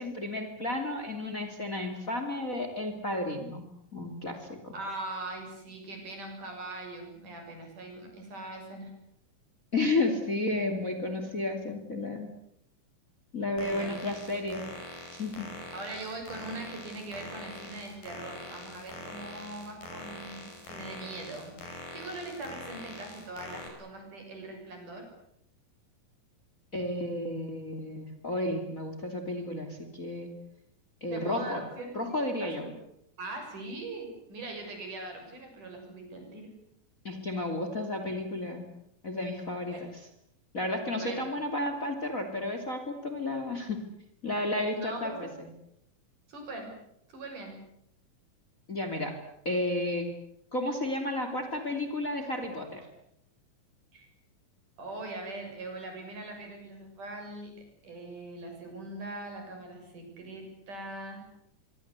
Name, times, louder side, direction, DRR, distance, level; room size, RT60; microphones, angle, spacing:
voice 1, 0.0-3.6 3.9-4.7 9.7-12.3 13.3-14.6 15.1-15.5 26.7-30.3 31.0-31.6 31.9-32.7 37.0-38.7 39.0-39.9 40.5-43.8 44.2-45.3 48.7-49.1 49.4-50.1 50.5-52.8, left 2 dB, 25° left, 6 dB, 3.0 m, -32 dB
voice 2, 4.7-8.9 13.6-14.0 15.7-25.1 31.1-32.8 33.2-36.5 39.7-39.8 41.0-41.3 44.7-45.3 46.3-46.7 47.1-47.6 53.9-54.1 54.8-57.5 57.8-61.2, right 2 dB, 60° right, 4 dB, 8.3 m, -41 dB
sound 1, 13.6-23.7, left 2 dB, 70° left, 7.8 m, -44 dB
25.0 x 24.0 x 8.3 m, 0.76 s
omnidirectional pair, 4.0 m